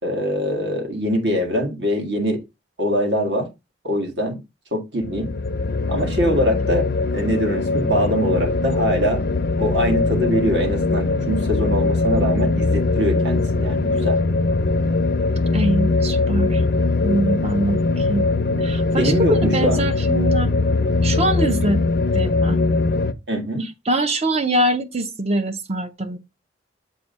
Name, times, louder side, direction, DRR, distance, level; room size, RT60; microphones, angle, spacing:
voice 1, 0.0-2.4 2.8-3.5 3.8-4.4 4.7-5.3 5.9-6.9 7.1-9.2 9.6-14.2 19.0-19.8 23.3-23.7, equal, 65° right, 1.7 m, -23 dB
sound 1, 5.0-23.1, left 3 dB, 55° left, 0.5 m, -21 dB
voice 2, 15.5-16.6 17.0-18.3 18.6-20.5 21.0-21.8 22.1-22.6 23.6-26.2, right 1 dB, 35° right, 0.7 m, -23 dB
7.2 x 2.6 x 5.4 m
head